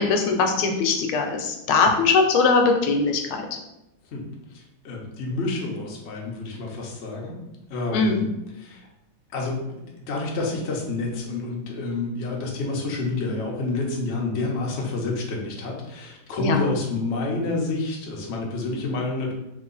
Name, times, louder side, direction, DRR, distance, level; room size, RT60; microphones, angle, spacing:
voice 1, 0.0-3.5 7.9-8.3 16.4-16.7, left 4 dB, 85° left, 4 dB, 1.5 m, -21 dB
voice 2, 4.5-7.3 7.7-8.2 8.6-8.8 9.3-9.6 10.1-19.3, left 3 dB, 60° left, -1 dB, 0.7 m, -28 dB
3.5 x 2.9 x 3.8 m, 0.89 s
omnidirectional pair, 2.3 m